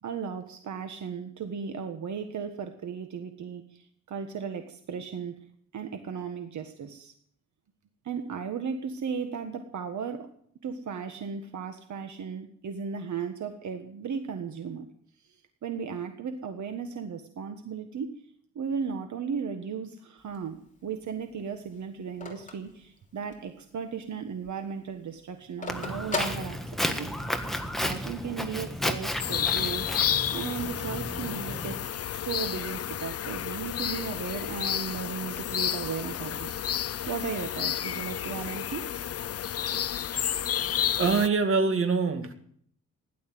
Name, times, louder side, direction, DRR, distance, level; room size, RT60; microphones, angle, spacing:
voice 1, 0.0-5.3 5.7-7.1 8.0-10.3 10.6-14.9 15.2-18.1 18.5-26.6 26.9-27.1 27.8-29.9 30.3-31.8 32.1-38.8, right 6 dB, 65° right, 6 dB, 1.5 m, -36 dB
Telephone, 20.2-23.6 24.0-24.1 24.3-27.2, left 2 dB, 25° left, 3.1 m, -38 dB
Walk footsteps, 25.7-31.8, equal, ahead, 1.5 m, -33 dB
sound 1, 29.2-41.3, left 10 dB, 50° left, 0.6 m, -31 dB
voice 2, 40.1-42.3, right 4 dB, 45° right, 5 dB, 2.2 m, -26 dB
16.5 x 11.5 x 7.7 m, 0.64 s
wide cardioid pair, 125°, 31 cm